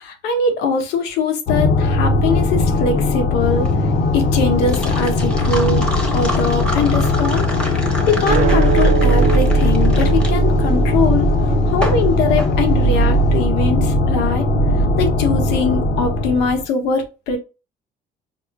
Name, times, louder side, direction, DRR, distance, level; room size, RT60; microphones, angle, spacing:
voice 1, 0.0-3.7 4.1-5.9 6.1-7.5 7.8-11.3 11.7-14.5 15.0-17.4, left 4 dB, 90° left, 0.9 m, -21 dB
sound 1, 1.5-16.6, left 2 dB, 60° left, 0.7 m, -19 dB
sound 2, 3.4-13.3, equal, 5° left, 0.9 m, -30 dB
sound 3, 8.3-14.8, right 4 dB, 45° right, 0.5 m, -20 dB
4.8 x 2.1 x 2.4 m
cardioid pair, 110°, 17 cm